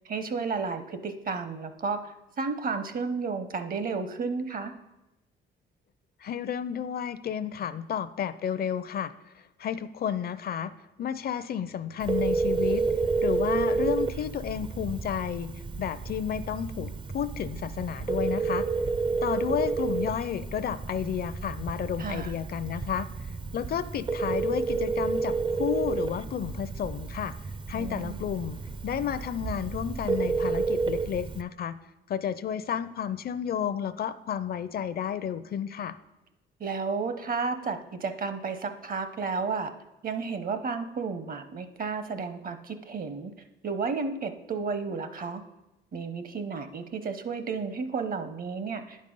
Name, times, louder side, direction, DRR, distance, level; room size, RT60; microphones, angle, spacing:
voice 1, 0.0-4.7 22.0-22.3 27.8-28.2 36.6-39.7 40.0-43.3 43.6-45.4 45.9-49.0, right 4 dB, 45° right, 9 dB, 0.8 m, -32 dB
voice 2, 6.2-9.1 9.6-10.7 11.0-12.8 13.2-15.5 15.8-18.6 19.2-23.1 23.5-27.3 27.7-28.6 28.8-31.7 32.1-36.0, left 8 dB, 50° left, 14 dB, 0.5 m, -31 dB
Telephone, 12.0-31.4, right 4 dB, 25° right, 0.4 m, -30 dB
10.0 x 5.3 x 5.3 m, 0.98 s
cardioid pair, 90°, 20 cm